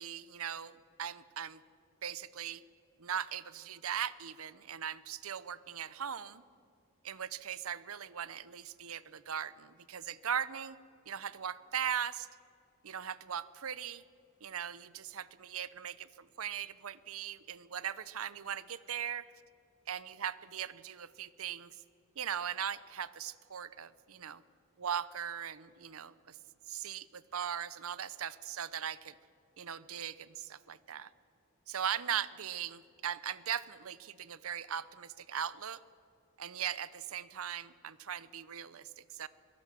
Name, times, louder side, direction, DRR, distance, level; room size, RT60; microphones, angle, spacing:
voice 1, 0.0-1.6 2.0-2.6 3.0-6.4 7.0-10.8 11.1-12.3 12.8-14.0 14.4-19.3 19.9-21.7 22.2-24.4 24.8-26.4 26.7-29.1 29.6-31.1 31.7-35.8 36.4-39.3, right 8 dB, 80° right, 18 dB, 0.7 m, -39 dB
23.0 x 17.0 x 7.6 m, 2.4 s
head